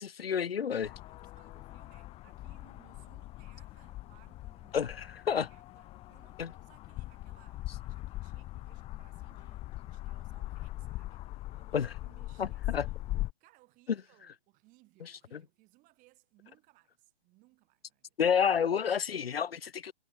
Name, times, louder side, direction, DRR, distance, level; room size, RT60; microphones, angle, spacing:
voice 1, 0.0-0.9 4.7-4.9 5.3-5.5 6.4-6.5 11.7-11.9 12.4-12.9 15.0-15.4 18.2-19.9, left 7 dB, 65° left, 0.9 m, -30 dB
sound 1, 0.8-13.3, left 17 dB, 20° left, 1.5 m, -41 dB
voice 2, 1.1-13.0 13.4-18.2, right 21 dB, 25° right, 6.7 m, -65 dB
figure-of-eight pair, 125°, 31 cm